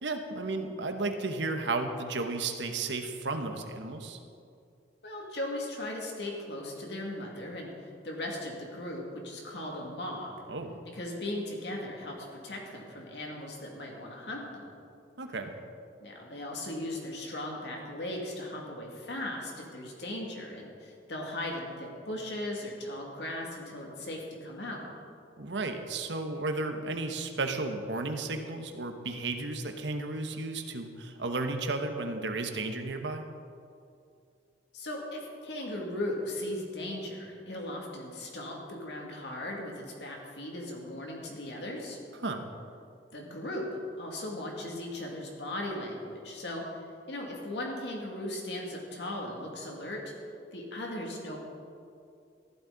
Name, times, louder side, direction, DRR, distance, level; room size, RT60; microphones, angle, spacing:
voice 1, 0.0-4.2 10.5-10.7 15.2-15.5 25.4-33.2 42.2-42.5, right 3 dB, 90° right, 6 dB, 1.1 m, -33 dB
voice 2, 5.0-10.3 10.9-14.7 16.0-24.9 34.7-42.0 43.1-46.6 47.1-50.1 50.5-51.4, left 1 dB, 70° left, -1 dB, 2.3 m, -38 dB
14.5 x 12.0 x 4.0 m, 2.4 s
head